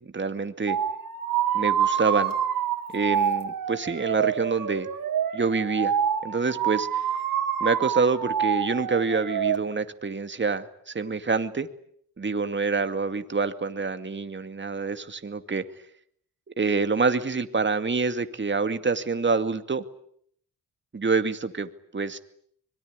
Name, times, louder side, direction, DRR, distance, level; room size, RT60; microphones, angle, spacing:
voice 1, 0.1-0.8 1.5-2.3 2.9-4.9 5.3-6.0 6.2-7.0 7.6-11.7 12.2-15.6 16.5-19.8 20.9-22.2, right 4 dB, 30° right, 9 dB, 2.3 m, -26 dB
sound 1, 0.7-9.6, right 8 dB, 70° right, 4.1 m, -27 dB
25.5 x 22.0 x 9.7 m, 0.66 s
cardioid pair, 70°, 35 cm